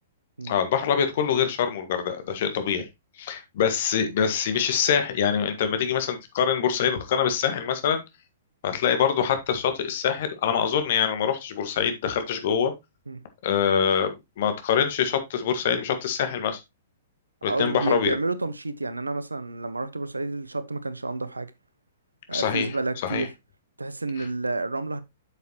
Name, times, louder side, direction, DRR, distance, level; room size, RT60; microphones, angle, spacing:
voice 1, 0.4-2.9 3.2-8.0 8.6-12.7 13.4-16.6 17.4-18.1 22.3-22.7 23.0-23.2, left 7 dB, 50° left, 1.7 m, -24 dB
voice 2, 17.4-21.5 22.3-23.3 23.8-25.0, right 3 dB, 80° right, 0.9 m, -30 dB
8.3 x 6.8 x 3.0 m
figure-of-eight pair, 110°, 0 cm